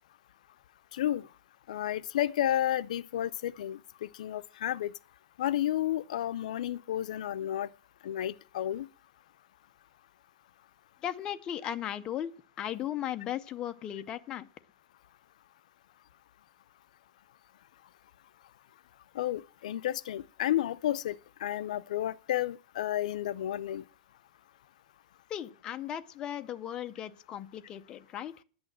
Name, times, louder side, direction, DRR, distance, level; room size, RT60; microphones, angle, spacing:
voice 1, 0.9-1.3 1.7-4.9 5.4-7.7 8.0-8.9 19.1-23.8, left 12 dB, 85° left, 0.5 m, -31 dB
voice 2, 11.0-14.5 25.3-28.3, left 11 dB, 20° left, 0.6 m, -37 dB
11.0 x 8.7 x 7.7 m
supercardioid pair, 170°, 4 cm